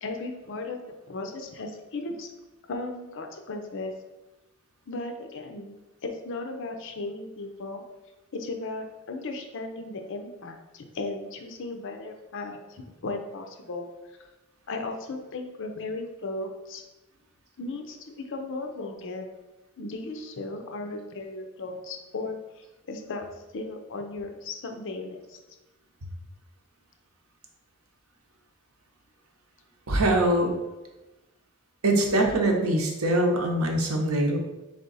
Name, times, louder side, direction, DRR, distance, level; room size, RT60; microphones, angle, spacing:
voice 1, 0.0-0.8 1.1-2.3 2.7-3.9 4.9-7.8 8.3-13.9 14.7-16.8 17.6-19.3 19.8-23.2 23.5-25.4, left 2 dB, 60° left, 4 dB, 0.6 m, -36 dB
voice 2, 29.9-30.5 31.8-34.4, right 1 dB, 75° right, 2 dB, 0.8 m, -23 dB
3.7 x 3.4 x 4.0 m, 1.1 s
head